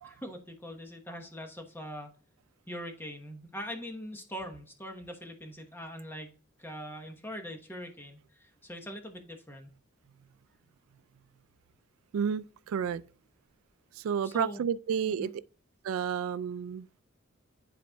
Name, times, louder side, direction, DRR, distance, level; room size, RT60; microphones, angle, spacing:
voice 1, 0.0-2.1 2.7-9.7 14.2-14.7 15.1-15.3, equal, 10° left, 1.0 m, -42 dB
voice 2, 12.1-13.0 14.0-15.3 15.8-16.9, right 7 dB, 80° right, 0.3 m, -31 dB
10.5 x 4.2 x 2.2 m
head